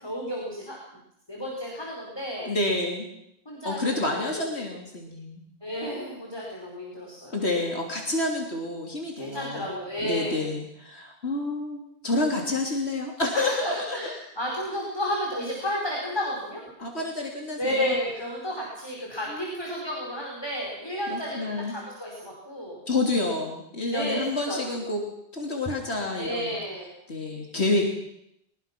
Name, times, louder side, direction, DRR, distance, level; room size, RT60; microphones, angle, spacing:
voice 1, 0.0-0.8 1.3-2.5 3.4-4.4 5.6-7.4 9.1-10.5 13.3-16.6 17.6-22.8 23.9-24.2 24.5-24.9 26.2-26.9, equal, 25° left, -3 dB, 4.9 m, -32 dB
voice 2, 2.5-3.1 3.7-5.4 7.3-9.7 10.0-14.1 16.8-18.0 19.3-20.0 21.1-21.8 22.9-25.0 25.3-26.6 27.1-27.8, left 2 dB, 85° left, 0 dB, 3.5 m, -29 dB
23.0 x 22.0 x 6.1 m, 0.79 s
omnidirectional pair, 1.1 m